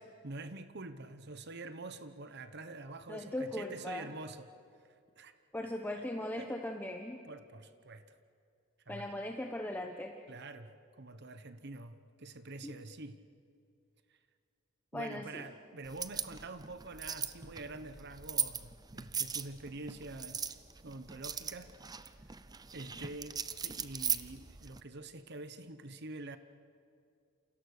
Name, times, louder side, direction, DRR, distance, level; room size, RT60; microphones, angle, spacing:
voice 1, 0.2-4.5 4.8-5.4 5.9-6.0 6.4-6.5 7.2-8.2 8.9-9.1 10.3-13.2 14.1-14.2 14.9-20.5 20.8-21.7 22.7-23.4 23.6-26.4, right 2 dB, 50° right, 11 dB, 1.0 m, -46 dB
voice 2, 3.1-4.1 5.5-7.2 8.9-10.2 12.6-12.7 14.9-15.4, left 1 dB, 10° left, 3 dB, 1.0 m, -39 dB
sound 1, 15.8-24.8, right 7 dB, 20° right, 0.6 m, -39 dB
29.0 x 28.0 x 6.6 m, 2.4 s
head